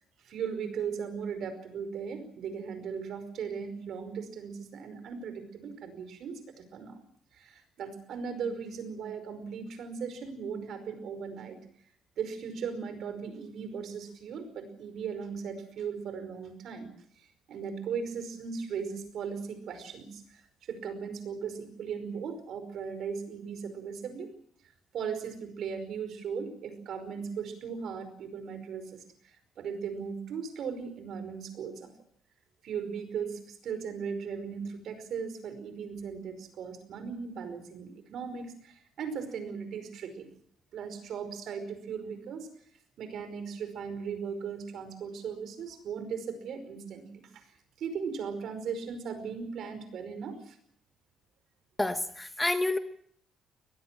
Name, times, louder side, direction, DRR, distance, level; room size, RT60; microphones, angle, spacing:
voice 1, 0.2-7.0 7.3-11.6 12.2-16.9 17.2-24.3 24.9-31.9 32.6-40.3 40.7-42.5 43.0-47.5 47.8-50.6, right 6 dB, 60° right, 10 dB, 5.2 m, -38 dB
voice 2, 51.8-52.8, left 2 dB, 10° left, 9 dB, 1.2 m, -28 dB
24.0 x 19.0 x 7.6 m, 0.64 s
cardioid pair, 150°, 0 cm